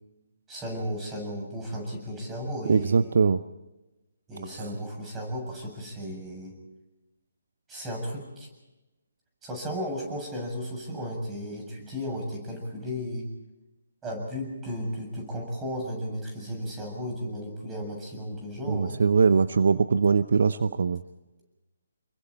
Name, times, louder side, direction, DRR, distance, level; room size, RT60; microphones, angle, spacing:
voice 1, 0.5-3.1 4.3-6.5 7.7-8.5 9.4-13.3 14.0-19.0, equal, 10° right, 0 dB, 7.4 m, -34 dB
voice 2, 2.7-3.4 18.7-21.0, right 5 dB, 55° right, 13 dB, 0.8 m, -22 dB
29.0 x 23.0 x 4.3 m, 1.1 s
figure-of-eight pair, 140°, 0 cm